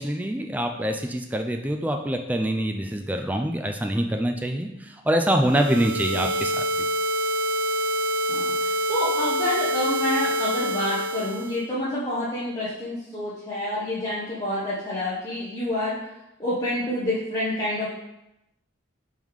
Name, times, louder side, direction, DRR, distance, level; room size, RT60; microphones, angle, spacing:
voice 1, 0.0-6.9, right 1 dB, 10° right, 3 dB, 0.4 m, -25 dB
sound 1, 5.5-11.6, right 1 dB, 85° right, 0.3 m, -26 dB
voice 2, 8.3-16.0 16.4-17.9, left 1 dB, 15° left, -10 dB, 1.0 m, -28 dB
5.4 x 3.7 x 4.7 m, 0.87 s
head